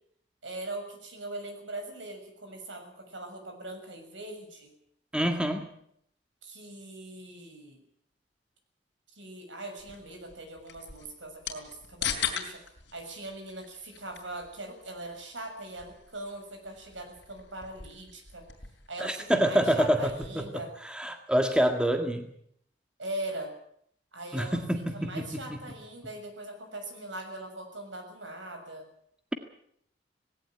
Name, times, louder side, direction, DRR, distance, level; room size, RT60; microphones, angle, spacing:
voice 1, 0.4-4.7 6.4-7.8 9.1-12.6 12.9-18.4 18.9-20.7 23.0-23.5 24.1-24.6 24.9-28.9, right 1 dB, 80° right, 5 dB, 6.8 m, -41 dB
voice 2, 5.1-5.7 19.0-22.3 24.3-25.2 25.5-25.6, equal, 5° right, 5 dB, 1.8 m, -27 dB
sound 1, 9.8-20.5, left 8 dB, 65° left, 4.4 m, -41 dB
19.0 x 17.5 x 9.0 m, 0.69 s
head